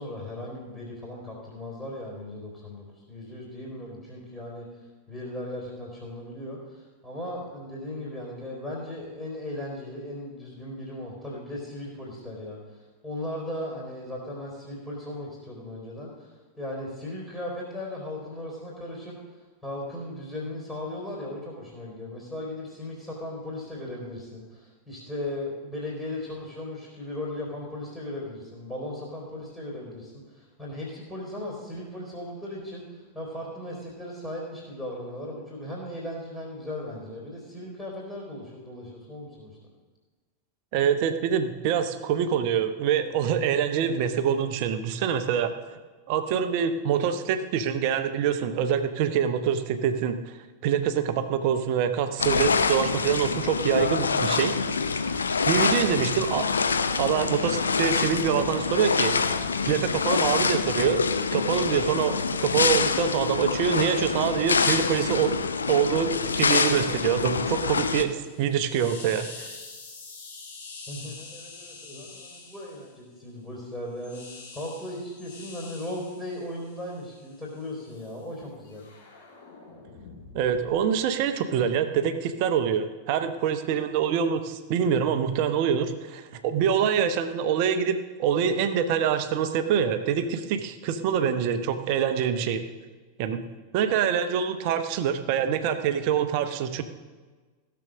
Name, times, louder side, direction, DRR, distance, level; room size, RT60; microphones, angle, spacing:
voice 1, 0.0-4.7 5.1-16.3 16.6-39.5 70.9-78.9, left 1 dB, 10° left, -5 dB, 3.6 m, -37 dB
voice 2, 40.7-45.8 46.1-54.5 55.1-55.2 55.5-56.5 57.0-59.1 59.6-61.0 61.3-65.4 65.7-66.1 66.4-69.5 80.3-92.6 93.2-93.4 93.7-96.8, right 8 dB, 45° right, 9 dB, 0.9 m, -25 dB
sound 1, 52.2-68.0, left 5 dB, 75° left, 0.6 m, -26 dB
sound 2, 67.9-72.9 74.0-78.2 78.7-81.0, left 4 dB, 55° left, 2.8 m, -46 dB
15.5 x 7.0 x 6.3 m, 1.4 s
figure-of-eight pair, 90°, 0 cm